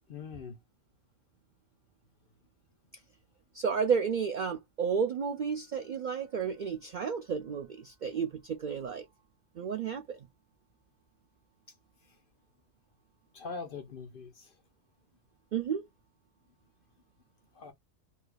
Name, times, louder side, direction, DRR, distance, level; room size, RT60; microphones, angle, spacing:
voice 1, 0.1-0.6 12.1-12.2 13.3-14.6 17.5-17.7, left 5 dB, 55° left, 0.6 m, -42 dB
voice 2, 3.5-9.1 9.6-10.2 15.5-15.8, right 6 dB, 85° right, 0.4 m, -32 dB
2.7 x 2.3 x 3.2 m
omnidirectional pair, 1.3 m